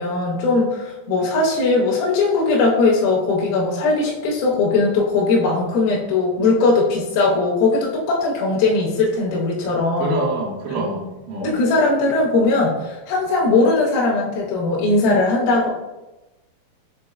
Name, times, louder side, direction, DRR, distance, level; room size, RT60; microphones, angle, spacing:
voice 1, 0.0-10.2 10.7-10.8 11.4-15.7, left 3 dB, 80° left, -4 dB, 2.5 m, -19 dB
voice 2, 10.0-11.5, right 2 dB, 75° right, -1 dB, 2.3 m, -26 dB
6.2 x 3.6 x 2.3 m, 1.0 s
omnidirectional pair, 4.3 m